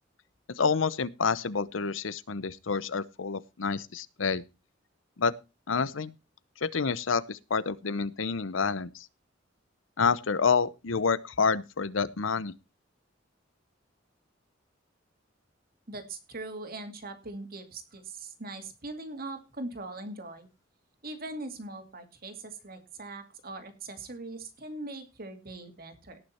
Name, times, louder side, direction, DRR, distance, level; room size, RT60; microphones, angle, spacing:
voice 1, 0.6-4.4 5.2-5.3 5.7-6.1 6.6-9.1 10.0-12.5, left 5 dB, 85° left, 19 dB, 0.8 m, -28 dB
voice 2, 15.9-20.5 21.0-26.2, right 2 dB, 50° right, 7 dB, 2.4 m, -41 dB
18.0 x 6.4 x 4.3 m, 0.28 s
head